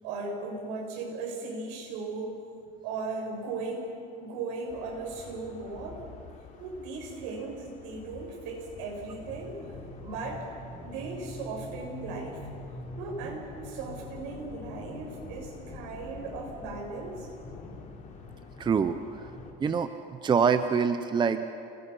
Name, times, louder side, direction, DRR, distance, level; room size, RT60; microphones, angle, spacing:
voice 1, 0.0-2.4 2.8-3.9 4.1-6.2 6.6-9.6 10.0-10.5 10.8-12.4 13.0-17.3, right 3 dB, 75° right, -1 dB, 7.2 m, -37 dB
sound 1, 4.7-19.5, left 3 dB, 40° left, 3.6 m, -45 dB
voice 2, 18.6-19.3 19.6-19.9 20.2-21.4, right 6 dB, 25° right, 9 dB, 0.8 m, -25 dB
29.5 x 21.0 x 5.6 m, 2.6 s
cardioid pair, 130°, 20 cm